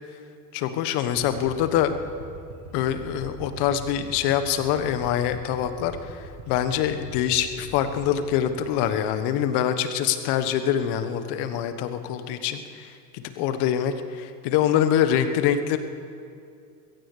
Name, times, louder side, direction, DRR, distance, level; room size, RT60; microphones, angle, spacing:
voice 1, 0.5-1.9 2.7-15.8, left 10 dB, 55° left, 9 dB, 1.3 m, -25 dB
sound 1, 1.1-9.2, right 2 dB, 75° right, 1.7 m, -43 dB
21.5 x 17.0 x 3.3 m, 2.5 s
hypercardioid pair, 75°, 49 cm